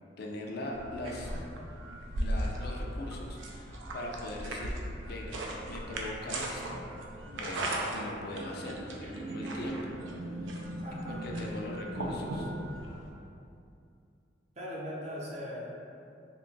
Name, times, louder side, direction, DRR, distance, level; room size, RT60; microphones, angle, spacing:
voice 1, 0.2-1.3 2.2-4.8 5.1-5.4 5.7-6.8 7.3-10.0 10.4-10.6 10.9-12.5, left 1 dB, 55° left, -1 dB, 0.4 m, -41 dB
sound 1, 0.7-13.1, right 1 dB, 80° right, 0.4 m, -37 dB
voice 2, 10.8-11.3 14.6-15.7, equal, 40° right, -5 dB, 0.6 m, -39 dB
2.8 x 2.3 x 3.9 m, 2.5 s
head